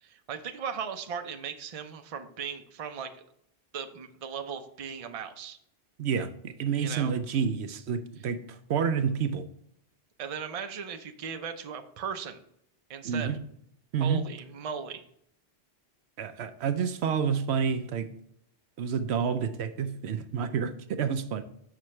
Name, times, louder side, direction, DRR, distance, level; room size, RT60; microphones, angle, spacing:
voice 1, 0.0-3.1 3.7-5.6 6.8-7.1 10.2-12.4 12.9-13.3 14.0-15.0, right 7 dB, 40° right, 0.6 m, -37 dB
voice 2, 6.0-9.5 13.0-13.4 13.9-14.2 16.2-18.1 18.8-21.4, right 6 dB, 75° right, 0.9 m, -29 dB
6.7 x 6.1 x 3.2 m
omnidirectional pair, 1.1 m